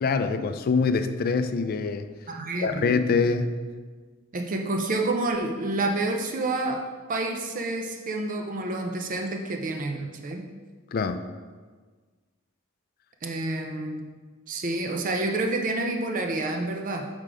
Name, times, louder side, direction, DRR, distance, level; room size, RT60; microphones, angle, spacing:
voice 1, 0.0-2.1 2.6-3.5 10.9-11.2, left 4 dB, 45° left, 10 dB, 0.4 m, -24 dB
voice 2, 2.3-3.0 4.3-10.5 13.2-14.0 14.5-17.1, right 2 dB, 40° right, 3 dB, 0.5 m, -29 dB
6.6 x 3.7 x 4.8 m, 1.5 s
head